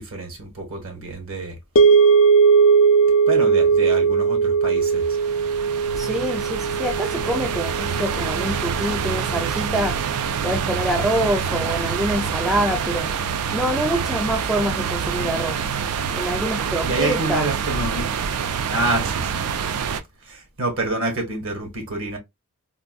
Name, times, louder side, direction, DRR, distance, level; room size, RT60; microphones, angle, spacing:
voice 1, 0.0-1.5 3.3-5.0 16.8-18.1 18.7-19.4 20.3-22.2, right 2 dB, 65° right, 1.3 m, -27 dB
sound 1, 1.8-10.0, right 5 dB, 65° left, 0.4 m, -19 dB
sound 2, 4.8-20.0, right 7 dB, 85° right, 0.4 m, -26 dB
voice 2, 6.0-10.0 10.4-13.1 13.5-15.6 16.1-17.5, equal, ahead, 0.3 m, -25 dB
3.6 x 2.5 x 2.2 m
head